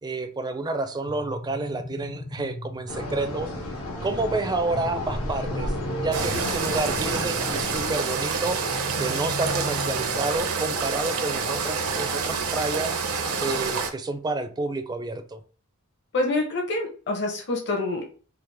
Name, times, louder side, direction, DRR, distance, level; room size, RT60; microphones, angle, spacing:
voice 1, 0.0-3.5 4.0-8.6 9.0-13.1 13.4-15.4, right 2 dB, 20° right, 0.4 m, -29 dB
sound 1, 1.1-3.1 4.7-6.8 8.4-10.4, left 1 dB, 35° left, 0.5 m, -37 dB
sound 2, 2.9-8.0, left 1 dB, 85° left, 1.2 m, -32 dB
sound 3, 6.1-13.9, right 5 dB, 75° right, 0.6 m, -27 dB
voice 2, 16.1-18.0, left 2 dB, 55° left, 0.9 m, -26 dB
4.6 x 2.1 x 3.3 m
head